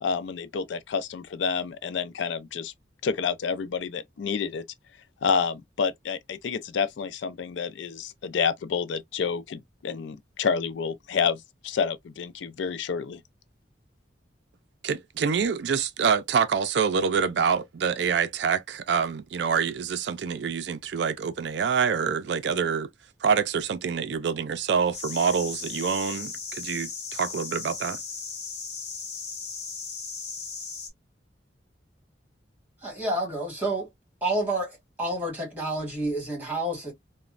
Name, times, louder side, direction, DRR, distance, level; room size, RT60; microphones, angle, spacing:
voice 1, 0.0-2.7 3.0-4.6 5.2-13.2, left 6 dB, 85° left, 0.4 m, -29 dB
voice 2, 14.8-22.9 23.2-28.0, right 6 dB, 70° right, 0.4 m, -26 dB
sound 1, 24.9-30.9, left 5 dB, 40° left, 0.8 m, -37 dB
voice 3, 32.8-33.9 34.2-36.9, right 1 dB, 10° right, 1.7 m, -29 dB
3.0 x 2.1 x 2.4 m
head